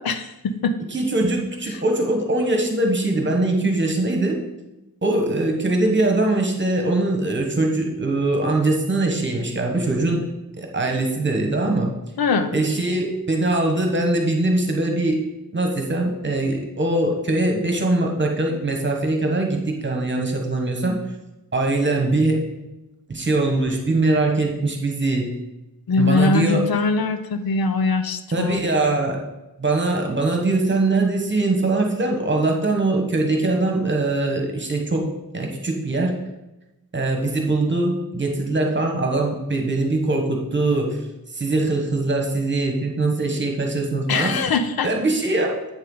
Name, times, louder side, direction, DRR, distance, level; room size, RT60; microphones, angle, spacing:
voice 1, 0.0-0.8 1.7-1.8 12.2-12.5 25.9-28.6 44.1-44.9, left 4 dB, 75° left, 9 dB, 0.7 m, -22 dB
voice 2, 0.9-4.4 5.0-10.2 10.6-11.9 12.5-15.2 15.5-21.0 21.5-22.4 23.1-25.3 26.0-26.7 28.3-29.2 29.6-36.2 36.9-41.0 41.3-44.4 44.8-45.6, right 2 dB, 30° right, 2 dB, 1.3 m, -22 dB
8.2 x 6.6 x 3.9 m, 0.99 s
wide cardioid pair, 135°, 37 cm